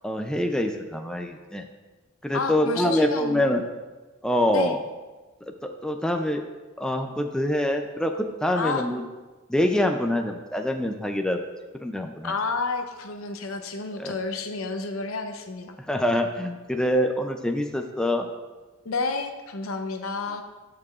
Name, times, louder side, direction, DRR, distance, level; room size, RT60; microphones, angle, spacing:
voice 1, 0.0-1.6 2.2-3.6 4.2-4.8 5.6-6.4 6.8-9.1 9.5-11.4 11.8-12.4 14.0-14.1 15.8-18.3, left 1 dB, 5° left, 4 dB, 0.3 m, -25 dB
voice 2, 2.3-3.5 4.5-4.7 8.6-8.8 12.2-15.8 18.8-20.4, left 4 dB, 80° left, 6 dB, 0.7 m, -30 dB
14.0 x 4.8 x 2.4 m, 1.3 s
head